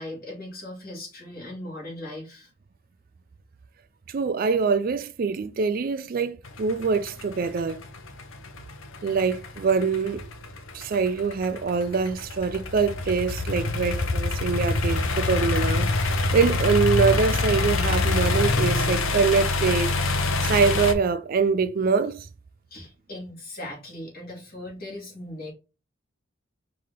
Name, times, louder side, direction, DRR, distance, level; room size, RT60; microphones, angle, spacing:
voice 1, 0.0-2.5 22.7-25.5, left 1 dB, 50° left, 2.2 m, -38 dB
voice 2, 4.1-7.8 9.0-10.2 10.7-19.9 20.4-22.3, right 5 dB, 45° right, 0.3 m, -24 dB
sound 1, 6.4-20.9, left 3 dB, 85° left, 0.8 m, -25 dB
4.8 x 2.8 x 3.7 m
head